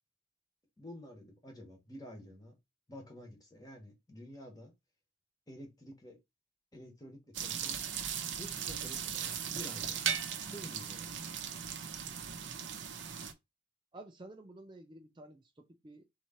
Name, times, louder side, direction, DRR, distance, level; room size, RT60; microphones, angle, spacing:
voice 1, 0.8-2.5 2.9-4.7 5.5-6.2 6.7-7.8 8.4-10.1 10.4-11.2, left 1 dB, 20° left, 1.3 m, -50 dB
sound 1, 7.3-13.3, right 8 dB, 80° right, 0.7 m, -38 dB
voice 2, 13.9-16.0, right 2 dB, 25° right, 0.4 m, -52 dB
3.7 x 3.1 x 4.3 m
head